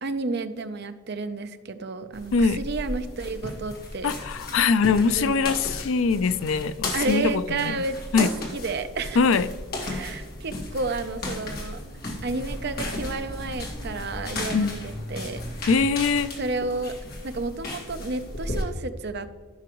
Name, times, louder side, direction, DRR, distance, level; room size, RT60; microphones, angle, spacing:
voice 1, 0.0-4.1 5.0-5.8 6.9-9.2 9.9-11.8 12.2-15.4 16.4-16.9 17.2-19.3, right 3 dB, 50° right, 0.6 m, -31 dB
sound 1, 2.1-18.6, left 1 dB, 45° left, 1.9 m, -35 dB
voice 2, 4.0-7.8 8.1-8.3 9.1-9.5 14.5-14.8 15.7-16.3, left 5 dB, 70° left, 0.4 m, -22 dB
14.0 x 6.0 x 3.0 m
head